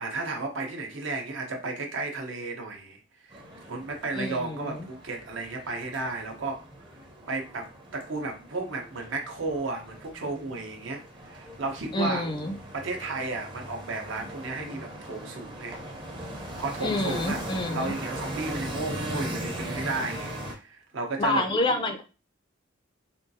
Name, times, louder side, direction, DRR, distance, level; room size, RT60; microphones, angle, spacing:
voice 1, 0.0-3.0 3.3-3.4 3.7-6.6 7.3-11.0 11.3-12.3 12.7-15.8 16.6-17.5 17.7-21.4 21.7-21.8, right 3 dB, 70° right, 3 dB, 0.7 m, -33 dB
sound 1, 3.3-20.5, right 1 dB, 25° right, 0.6 m, -39 dB
voice 2, 4.1-4.9 11.9-12.6 16.8-18.0 21.2-22.0, left 2 dB, 25° left, 6 dB, 0.3 m, -28 dB
3.6 x 2.3 x 2.7 m, 0.32 s
head